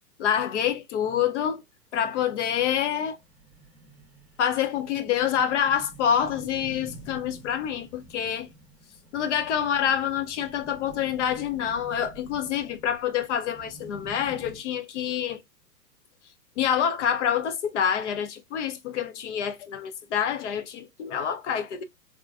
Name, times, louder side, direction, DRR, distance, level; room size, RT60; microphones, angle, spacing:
voice 1, 0.2-1.6 1.9-3.2 4.4-8.5 9.1-15.4 16.6-21.8, left 9 dB, 50° left, 0.5 m, -27 dB
sound 1, 1.9-2.0 2.3-2.4 2.7-2.8 3.0-14.6, right 1 dB, ahead, 0.8 m, -48 dB
3.6 x 2.1 x 2.2 m
hypercardioid pair, 130°, 49 cm